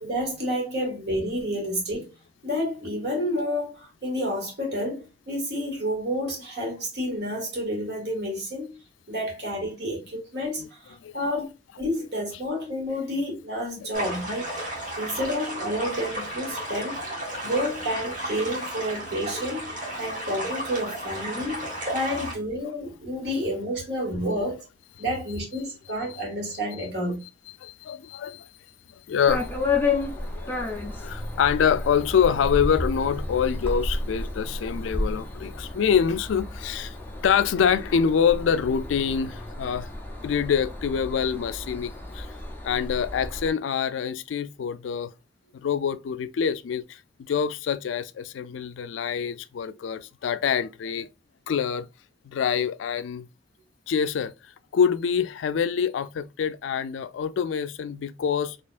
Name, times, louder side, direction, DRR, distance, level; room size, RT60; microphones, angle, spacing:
voice 1, 0.0-2.1 2.4-8.7 9.1-11.5 11.8-14.5 15.0-17.0 17.4-19.7 20.0-24.6 25.0-27.2, equal, 60° right, 1.8 m, -30 dB
sound 1, 13.9-22.3, right 1 dB, 45° right, 1.7 m, -33 dB
voice 2, 27.6-28.5 29.1-29.5 30.2-37.0 37.2-39.9 40.2-42.3 42.6-45.1 45.5-51.1 51.5-51.9 52.2-53.3 53.9-54.3 54.7-58.6, left 7 dB, 85° left, 0.3 m, -25 dB
sound 2, 29.3-43.5, left 2 dB, 10° left, 0.6 m, -32 dB
4.3 x 2.8 x 2.4 m
head